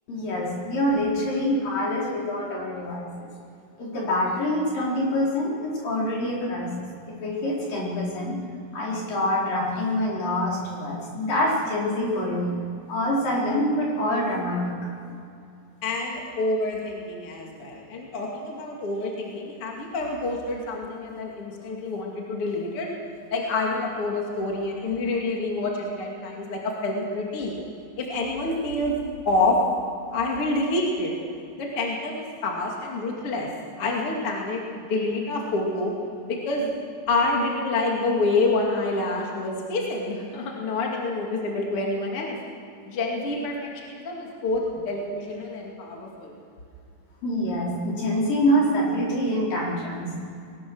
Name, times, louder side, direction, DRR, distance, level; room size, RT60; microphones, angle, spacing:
voice 1, 0.1-3.3 3.8-8.4 8.7-12.5 12.9-14.9 47.2-50.1, left 1 dB, 55° left, -4 dB, 5.9 m, -26 dB
voice 2, 15.8-22.9 23.3-27.5 28.0-29.0 29.2-29.6 30.1-31.1 31.6-33.5 33.8-34.6 34.9-35.9 36.2-36.7 37.1-42.4 42.9-46.3, left 2 dB, 40° left, -1 dB, 2.9 m, -27 dB
22.5 x 19.0 x 6.3 m, 2.5 s
omnidirectional pair, 4.7 m